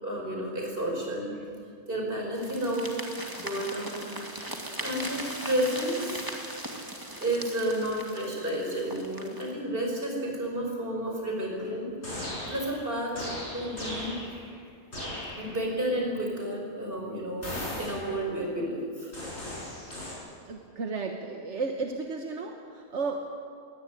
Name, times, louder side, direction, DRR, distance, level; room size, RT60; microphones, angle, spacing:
voice 1, 0.0-1.4 1.9-2.9 3.3-4.0 4.4-4.5 4.8-6.3 7.2-14.2 15.4-19.1, right 1 dB, 55° right, -1 dB, 6.0 m, -31 dB
sound 1, 2.3-9.5, right 1 dB, 20° right, 2.2 m, -39 dB
sound 2, 12.0-12.9 13.2-14.5 14.9-15.7 17.4-18.3 19.1-20.1, left 1 dB, 80° left, 6.8 m, -37 dB
voice 2, 20.5-23.4, right 4 dB, 85° right, 4 dB, 1.6 m, -33 dB
21.5 x 17.5 x 10.0 m, 2.3 s
omnidirectional pair, 1.2 m